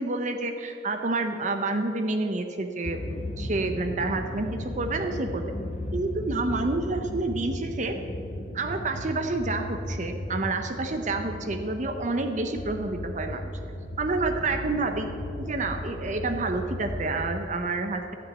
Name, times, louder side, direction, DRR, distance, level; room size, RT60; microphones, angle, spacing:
voice 1, 0.0-5.5 5.9-8.0 8.5-13.5 14.0-15.1 15.4-18.2, right 3 dB, 35° right, 5 dB, 0.7 m, -29 dB
sound 1, 2.8-17.3, left 1 dB, 35° left, 0.8 m, -36 dB
14.0 x 6.1 x 9.0 m, 2.7 s
head